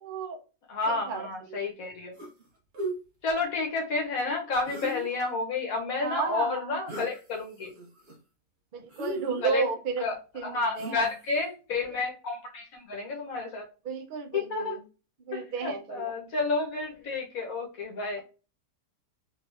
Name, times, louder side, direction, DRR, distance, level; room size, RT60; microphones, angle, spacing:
voice 1, 0.0-0.4 0.9-1.7 6.0-6.8 8.7-10.1 10.3-11.1 13.9-14.8 15.3-16.1, right 4 dB, 85° right, 4 dB, 0.4 m, -33 dB
voice 2, 0.7-2.1 3.2-7.7 9.4-9.6 10.0-10.2 10.4-13.6 14.3-14.8 15.3-18.2, left 3 dB, 60° left, 1 dB, 1.2 m, -30 dB
sound 1, 2.2-2.4 2.7-3.0 4.6-5.3 6.9-7.2 7.6-8.1 8.9-9.8 10.8-11.3, right 2 dB, 45° right, 1.1 m, -36 dB
3.5 x 3.2 x 2.5 m, 0.33 s
omnidirectional pair, 1.8 m